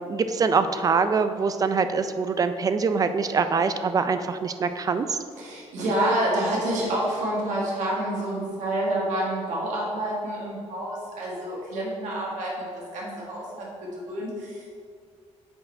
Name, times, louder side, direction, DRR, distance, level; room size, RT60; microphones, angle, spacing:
voice 1, 0.0-5.2, right 5 dB, 30° right, 10 dB, 0.4 m, -24 dB
voice 2, 5.4-13.6 13.9-14.7, right 1 dB, 90° right, -4 dB, 1.6 m, -28 dB
7.8 x 4.3 x 4.4 m, 2.1 s
cardioid pair, 135°, 12 cm